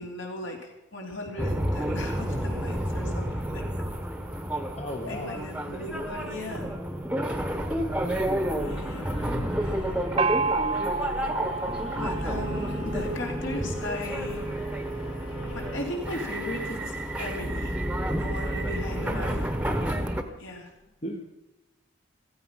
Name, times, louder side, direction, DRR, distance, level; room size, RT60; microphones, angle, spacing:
voice 1, 0.0-3.7 5.1-6.7 8.6-9.1 9.6-10.0 11.7-14.6 15.5-17.8 18.2-19.8 20.4-20.7, left 1 dB, 70° left, 1 dB, 3.7 m, -37 dB
sound 1, 1.4-20.2, right 1 dB, 5° right, 1.1 m, -30 dB
voice 2, 4.8-5.4 9.2-9.6 19.0-19.5 21.0-21.2, left 1 dB, 30° left, 4 dB, 1.0 m, -36 dB
sound 2, 7.4-15.8, left 1 dB, 85° left, 4.1 m, -42 dB
Gong, 10.2-13.7, right 4 dB, 30° right, 0.4 m, -30 dB
15.5 x 14.5 x 5.7 m, 1.0 s
head